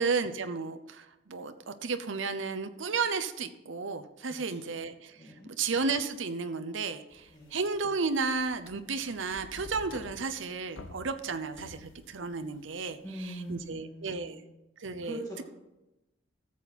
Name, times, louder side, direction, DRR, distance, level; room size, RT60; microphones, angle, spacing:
voice 1, 0.0-13.0 13.2-14.4 14.8-15.2, right 4 dB, 75° right, 9 dB, 0.8 m, -33 dB
voice 2, 5.1-5.5 7.3-7.6 13.0-14.6 15.0-15.4, right 1 dB, 20° left, -5 dB, 2.4 m, -42 dB
sound 1, 7.1-13.7, left 3 dB, 75° left, 0.7 m, -51 dB
14.0 x 7.4 x 4.2 m, 0.96 s
head